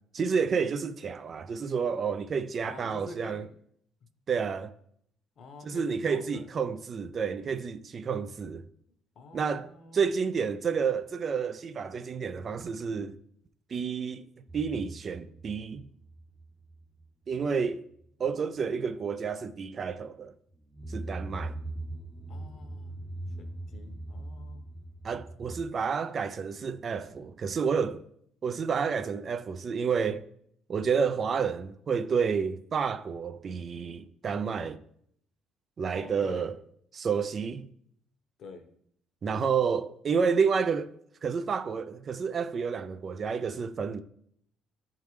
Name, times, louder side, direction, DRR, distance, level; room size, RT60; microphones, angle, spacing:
voice 1, 0.1-3.4 4.3-4.7 5.6-8.6 9.3-13.2 13.7-14.2 14.5-15.9 17.3-17.8 18.2-20.3 20.9-21.6 25.0-28.0 28.4-30.3 30.7-34.8 35.8-36.5 36.9-37.7 39.2-40.9 41.2-44.0, right 6 dB, 45° right, 0.4 m, -30 dB
voice 2, 2.6-3.5 5.4-6.5 9.1-10.2 22.3-23.0 23.4-24.7 35.9-36.5 38.4-38.6, left 3 dB, 60° left, 1.0 m, -47 dB
sound 1, 14.5-17.0 17.3-17.7 17.9-18.1 20.6-25.6, right 2 dB, 5° right, 0.7 m, -41 dB
10.0 x 3.6 x 3.2 m
supercardioid pair, 85°, 0 cm